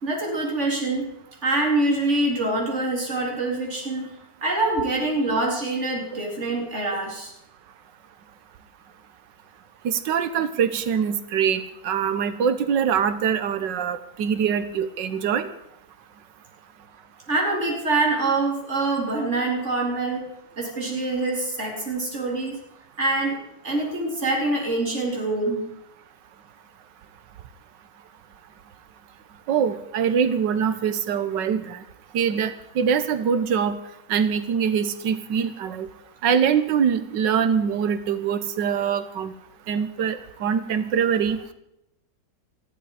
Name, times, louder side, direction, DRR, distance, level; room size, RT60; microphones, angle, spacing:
voice 1, 0.0-1.1 1.4-4.1 4.4-7.3 17.3-20.3 20.6-22.6 23.0-23.4 23.6-25.7, right 2 dB, 40° right, -1 dB, 4.4 m, -25 dB
voice 2, 9.8-15.5 29.5-31.8 32.1-33.8 34.1-35.9 36.2-39.3 39.7-41.4, right 7 dB, 90° right, 12 dB, 1.7 m, -23 dB
20.0 x 14.5 x 5.0 m, 0.81 s
omnidirectional pair, 1.9 m